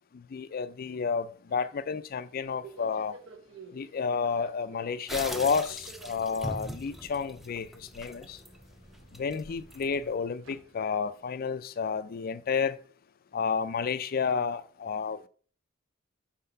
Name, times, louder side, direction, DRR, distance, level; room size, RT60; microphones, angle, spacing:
voice 1, 0.1-3.2 3.7-8.4 9.1-12.8 13.3-15.3, left 5 dB, 45° left, 0.4 m, -31 dB
Subway metro underground, 1.5-11.2, right 3 dB, 70° right, 1.0 m, -53 dB
sound 1, 5.1-10.2, equal, ahead, 0.5 m, -42 dB
5.7 x 4.2 x 5.5 m
head